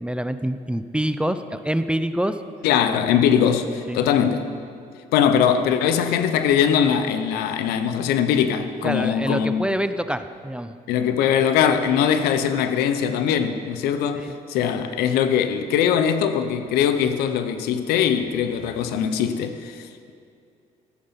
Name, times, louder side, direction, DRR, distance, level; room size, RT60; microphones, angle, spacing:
voice 1, 0.0-2.4 3.1-3.2 3.9-4.0 8.8-10.7 14.2-14.3, right 1 dB, 5° right, 0.7 m, -26 dB
voice 2, 2.6-4.5 5.1-9.6 10.9-19.9, left 8 dB, 80° left, 0.8 m, -21 dB
14.5 x 8.6 x 5.8 m
supercardioid pair, 60°, 16 cm